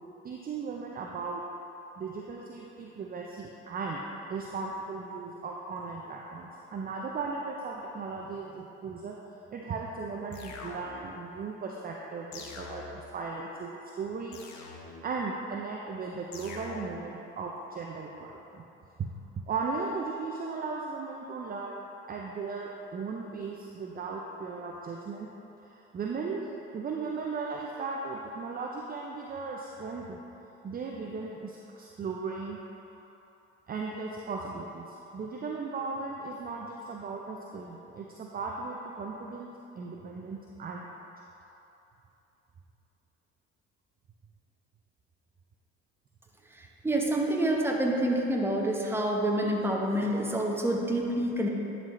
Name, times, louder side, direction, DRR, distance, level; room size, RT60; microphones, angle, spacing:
voice 1, 0.2-1.4 2.0-9.2 9.5-14.4 15.0-18.6 19.5-25.3 25.6-30.2 30.6-32.6 33.7-39.5 39.7-40.9 48.8-48.9, right 4 dB, 25° right, -1 dB, 0.6 m, -37 dB
sound 1, 10.3-11.2 12.3-13.2 14.3-15.2 16.3-17.2, left 4 dB, 55° left, 1.0 m, -44 dB
voice 2, 46.6-51.5, right 1 dB, 5° right, -1 dB, 1.1 m, -27 dB
10.5 x 4.1 x 3.2 m, 3.0 s
hypercardioid pair, 65°, 33 cm